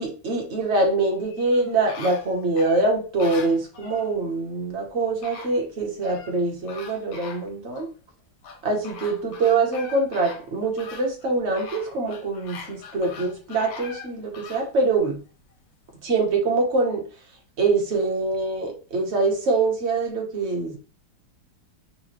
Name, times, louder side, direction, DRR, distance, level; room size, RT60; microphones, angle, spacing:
voice 1, 0.0-7.9 8.6-15.2 16.0-17.0 17.6-20.8, right 3 dB, 45° right, 1 dB, 1.0 m, -24 dB
sound 1, 1.2-4.1 4.8-4.9 5.2-6.4 6.7-7.9 8.4-14.7 15.2-15.3, left 5 dB, 85° left, 1.5 m, -42 dB
5.8 x 2.3 x 3.0 m, 0.37 s
omnidirectional pair, 2.1 m